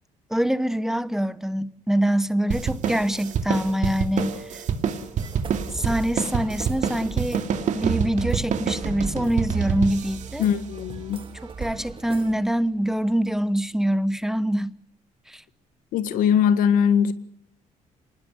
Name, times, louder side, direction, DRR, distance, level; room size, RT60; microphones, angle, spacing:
voice 1, 0.3-4.6 5.7-7.5 7.7-10.4 11.6-14.7 15.3-15.4, right 1 dB, 5° right, 0.9 m, -24 dB
sound 1, 2.5-11.3, right 7 dB, 60° right, 2.6 m, -28 dB
sound 2, 5.2-12.3, right 5 dB, 40° right, 2.1 m, -37 dB
voice 2, 10.4-11.3 15.9-17.1, left 8 dB, 85° left, 1.7 m, -21 dB
26.0 x 20.0 x 6.6 m
cardioid pair, 105°, 14 cm